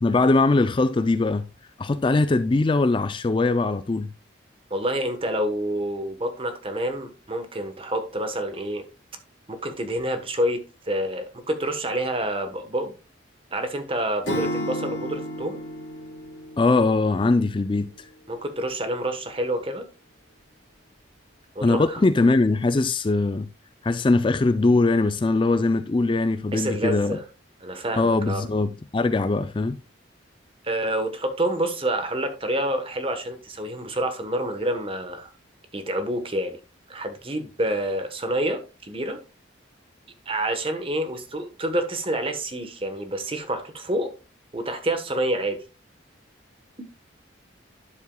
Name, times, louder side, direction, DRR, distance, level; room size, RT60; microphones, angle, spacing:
voice 1, 0.0-1.5 1.8-4.1 16.6-17.9 21.6-23.5 23.8-27.2 28.0-29.8, left 3 dB, 25° left, 0.3 m, -21 dB
voice 2, 4.7-8.8 9.5-12.9 13.5-15.6 18.3-19.9 21.5-22.0 26.5-27.2 27.6-28.5 30.6-35.3 35.7-36.6 36.9-39.2 40.3-44.1 44.5-45.6 46.8-46.9, right 1 dB, 30° right, 1.1 m, -28 dB
Acoustic guitar / Strum, 14.2-17.3, equal, 70° left, 2.8 m, -32 dB
11.0 x 7.4 x 2.2 m
head